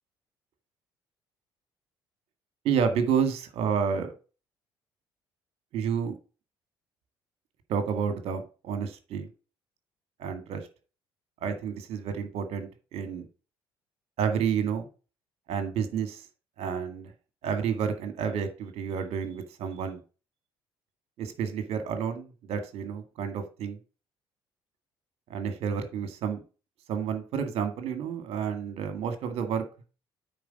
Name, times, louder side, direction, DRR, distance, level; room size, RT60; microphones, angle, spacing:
voice 1, 2.6-4.1 5.7-6.1 7.7-9.3 10.2-10.7 11.4-13.3 14.2-14.9 15.5-16.2 16.6-17.1 17.4-20.0 21.2-23.8 25.3-26.4 26.9-29.6, right 7 dB, 55° right, 9 dB, 1.9 m, -30 dB
9.2 x 4.4 x 5.3 m, 0.34 s
figure-of-eight pair, 50°, 12 cm